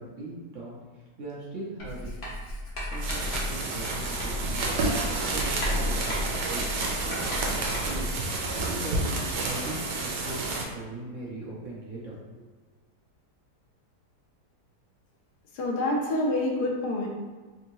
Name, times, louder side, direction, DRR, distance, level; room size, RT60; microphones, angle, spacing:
voice 1, 0.0-2.2 2.8-4.7 5.1-6.2 6.5-6.7 7.0-7.2 7.7-8.1 8.7-12.4, right 2 dB, 60° right, -5 dB, 0.9 m, -39 dB
Writing, 1.8-8.2, left 1 dB, 40° left, 0.9 m, -34 dB
sound 1, 2.9-10.6, right 2 dB, 85° right, 1.3 m, -30 dB
voice 2, 15.5-17.1, left 1 dB, 75° left, -1 dB, 1.2 m, -27 dB
3.5 x 2.7 x 3.0 m, 1.3 s
omnidirectional pair, 1.8 m